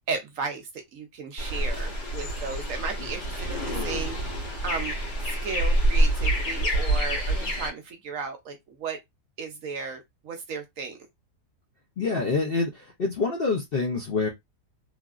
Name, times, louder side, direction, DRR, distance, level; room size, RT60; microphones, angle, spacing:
voice 1, 0.1-4.9 5.4-9.0 9.4-11.0, right 5 dB, 65° right, 0.9 m, -35 dB
sound 1, 1.4-7.7, right 1 dB, 85° left, 1.8 m, -26 dB
voice 2, 12.0-14.3, left 4 dB, 60° left, 0.6 m, -26 dB
3.3 x 2.5 x 2.4 m
omnidirectional pair, 1.7 m